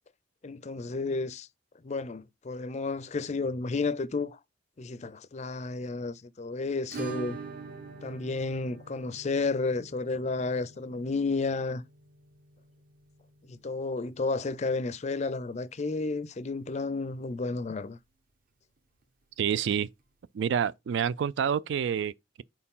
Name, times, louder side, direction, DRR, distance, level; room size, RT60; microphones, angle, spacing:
voice 1, 0.4-1.5 1.8-4.4 4.8-7.4 8.0-11.8 13.5-18.0, left 3 dB, 35° left, 0.4 m, -32 dB
Acoustic guitar / Strum, 6.9-15.5 15.8-15.9 16.2-16.3 16.6-16.7 18.8-18.9 20.0-20.1, right 5 dB, 45° right, 0.9 m, -45 dB
voice 2, 19.4-19.9 20.3-22.4, right 8 dB, 65° right, 0.3 m, -28 dB
4.6 x 4.5 x 5.4 m
head